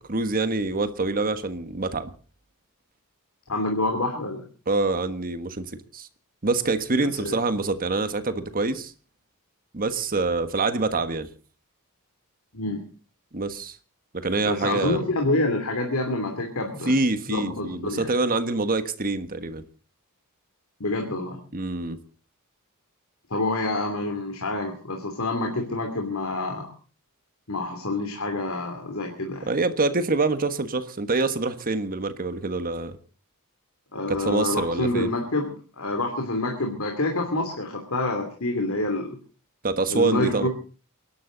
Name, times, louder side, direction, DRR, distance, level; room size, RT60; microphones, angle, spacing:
voice 1, 0.1-2.1 4.7-5.7 5.9-6.1 6.4-8.9 9.7-11.3 13.3-13.8 14.1-15.0 16.9-19.6 21.5-22.0 29.5-33.0 34.1-35.1 39.6-40.5, right 3 dB, 40° right, 1.4 m, -25 dB
voice 2, 3.5-4.4 7.0-7.4 12.5-12.8 14.4-17.0 17.3-18.1 20.8-21.4 23.3-26.7 27.5-29.5 33.9-39.2 39.9-40.5, left 2 dB, 70° left, 2.9 m, -27 dB
29.0 x 12.0 x 4.0 m
head